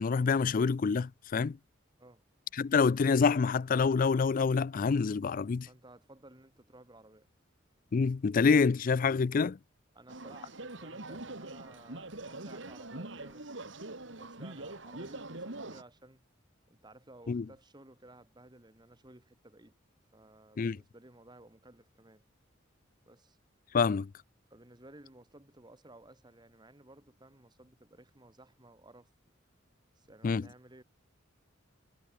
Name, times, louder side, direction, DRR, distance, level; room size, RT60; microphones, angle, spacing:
voice 1, 0.0-1.6 2.5-5.7 7.9-9.6 17.3-17.4 20.6-20.8 23.7-24.1 30.2-30.5, left 5 dB, 45° left, 0.4 m, -27 dB
voice 2, 5.7-7.3 9.9-13.6 14.2-16.2 16.7-19.8 20.1-22.2 23.1-23.4 24.5-29.1 29.9-30.8, right 2 dB, 20° right, 1.9 m, -56 dB
sound 1, 10.1-15.8, right 2 dB, 65° right, 2.9 m, -43 dB
head